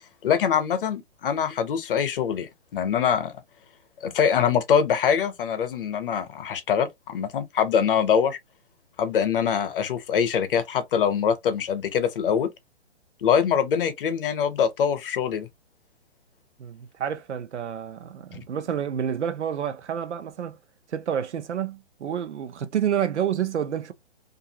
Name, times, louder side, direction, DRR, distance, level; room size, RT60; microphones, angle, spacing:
voice 1, 0.2-3.3 4.0-8.4 9.0-12.5 13.2-15.5, left 7 dB, 50° left, 0.8 m, -24 dB
voice 2, 16.6-20.6 20.9-23.9, right 9 dB, 85° right, 0.7 m, -29 dB
2.6 x 2.4 x 2.8 m
hypercardioid pair, 145°, 34 cm